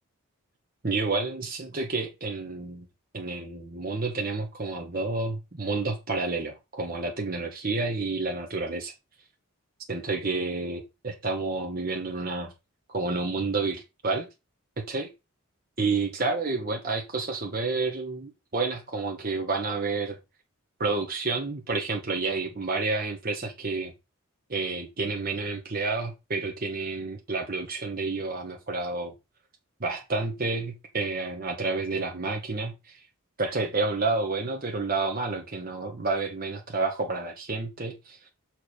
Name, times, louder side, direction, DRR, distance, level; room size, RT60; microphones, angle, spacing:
voice 1, 0.8-2.9 3.1-8.9 9.9-12.5 12.9-14.3 14.8-15.1 15.8-20.2 20.8-23.9 24.5-29.1 29.8-33.0 33.4-38.2, right 3 dB, 40° right, 1.0 m, -30 dB
6.6 x 4.5 x 4.8 m
head